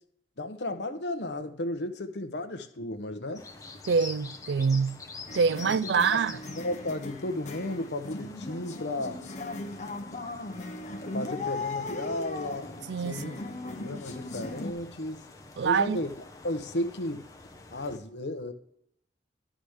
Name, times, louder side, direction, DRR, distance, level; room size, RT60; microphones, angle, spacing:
voice 1, 0.4-3.5 5.6-5.7 6.1-6.2 6.5-9.2 11.1-13.4 13.8-15.2 15.6-16.1 16.4-17.3 17.7-18.5, left 1 dB, 65° left, 1.0 m, -34 dB
sound 1, 3.4-18.0, left 3 dB, 20° left, 1.0 m, -47 dB
voice 2, 3.9-5.0 5.3-6.4 12.9-13.4 15.6-16.0, right 5 dB, 70° right, 0.4 m, -25 dB
sound 2, 5.3-14.7, left 3 dB, 40° left, 1.0 m, -38 dB
11.5 x 5.1 x 6.4 m
head